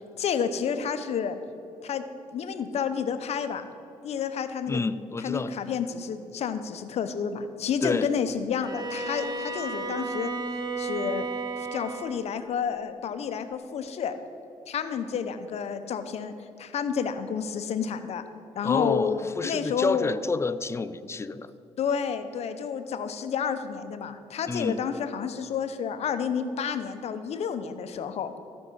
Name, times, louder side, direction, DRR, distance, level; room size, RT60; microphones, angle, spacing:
voice 1, 0.2-1.4 1.8-3.7 4.0-4.8 5.2-10.3 10.8-11.3 11.6-14.2 14.7-18.2 18.5-20.2 21.8-28.3, left 7 dB, 60° left, 10 dB, 0.8 m, -30 dB
voice 2, 4.7-5.5 7.8-8.1 18.6-21.5 24.5-24.9, left 3 dB, 20° left, 14 dB, 0.4 m, -29 dB
Bowed string instrument, 8.6-12.3, right 3 dB, 35° right, 0.9 m, -33 dB
13.5 x 5.5 x 5.5 m, 2.8 s
cardioid pair, 80°, 12 cm